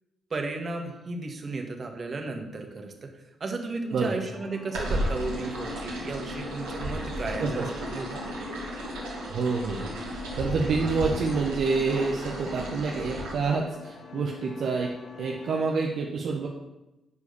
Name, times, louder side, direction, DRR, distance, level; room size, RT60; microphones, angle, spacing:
voice 1, 0.3-8.2, right 3 dB, 45° right, 3 dB, 1.9 m, -34 dB
sound 1, 4.3-15.7, left 6 dB, 60° left, 1.1 m, -46 dB
sound 2, 4.7-13.3, equal, 80° right, 3.0 m, -34 dB
voice 2, 9.3-16.5, right 4 dB, 65° right, -1 dB, 1.1 m, -28 dB
11.0 x 4.8 x 7.0 m, 0.99 s
hypercardioid pair, 45°, 0 cm